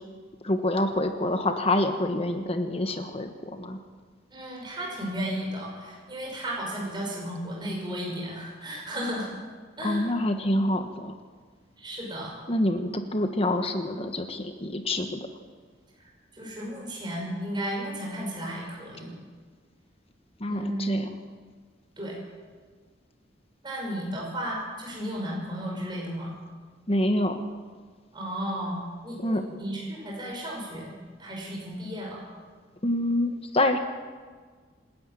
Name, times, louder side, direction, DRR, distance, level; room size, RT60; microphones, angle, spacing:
voice 1, 0.4-3.8 9.8-11.1 12.5-15.3 20.4-21.1 26.9-27.5 29.2-29.4 32.8-33.8, left 1 dB, 30° left, 6 dB, 1.4 m, -26 dB
voice 2, 4.3-9.3 9.8-10.1 11.8-12.3 16.0-19.1 20.5-20.9 22.0-22.2 23.6-26.3 28.1-32.2, equal, 25° right, -2 dB, 5.8 m, -34 dB
28.0 x 10.0 x 9.1 m, 1.5 s
head